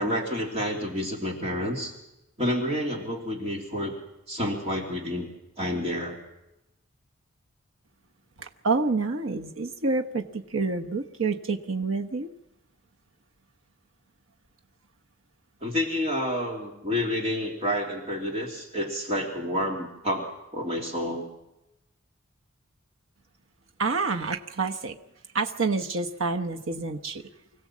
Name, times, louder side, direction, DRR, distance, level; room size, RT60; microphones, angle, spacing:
voice 1, 0.0-1.9 2.4-4.0 4.3-5.3 5.6-6.2 15.6-21.3, equal, 30° right, 0 dB, 2.9 m, -29 dB
voice 2, 8.4-12.3 23.8-25.0 25.3-27.3, right 3 dB, 80° right, 4 dB, 1.1 m, -28 dB
25.5 x 16.0 x 7.4 m, 0.93 s
head